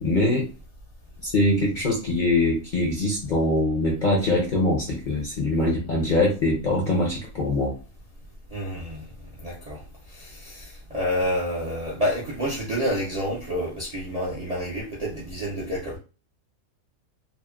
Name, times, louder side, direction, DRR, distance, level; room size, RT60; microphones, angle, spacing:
voice 1, 0.0-0.5 1.2-7.7, left 2 dB, 50° left, 0.6 m, -23 dB
voice 2, 8.5-9.0 9.4-9.8 10.1-16.0, equal, 45° right, 0.5 m, -29 dB
2.9 x 2.1 x 2.2 m
omnidirectional pair, 1.4 m